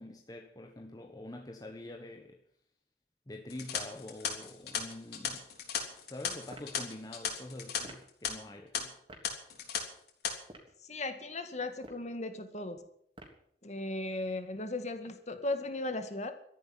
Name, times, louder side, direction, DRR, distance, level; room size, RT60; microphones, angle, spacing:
voice 1, 0.0-2.4 3.3-5.5 6.1-9.0, left 1 dB, 20° left, 1.3 m, -46 dB
sound 1, 3.5-7.8 8.1-8.3 8.7-8.8 9.2-9.8 10.1-10.3, left 7 dB, 65° left, 3.5 m, -36 dB
sound 2, 6.5-6.8 7.8-8.1 9.1-9.3 10.4-10.8 11.7-12.1 13.1-13.5, right 1 dB, 30° right, 3.3 m, -50 dB
voice 2, 10.9-12.8 13.6-16.3, left 2 dB, 40° left, 2.0 m, -36 dB
13.5 x 11.0 x 9.8 m
head